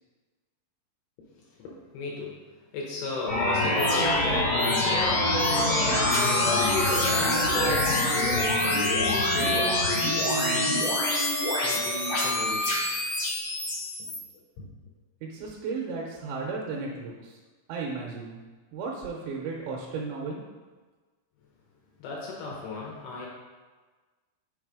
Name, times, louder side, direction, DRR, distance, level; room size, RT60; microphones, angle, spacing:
voice 1, 1.4-2.5 2.7-10.8 11.5-12.8 14.6-14.7 22.0-23.3, left 3 dB, 80° left, -3 dB, 2.7 m, -35 dB
sound 1, 3.3-14.2, left 1 dB, 55° left, 1.7 m, -25 dB
voice 2, 15.2-17.4 17.7-18.4 18.7-20.4, right 4 dB, 85° right, -2 dB, 2.8 m, -34 dB
6.5 x 3.9 x 4.8 m, 1.3 s
omnidirectional pair, 5.3 m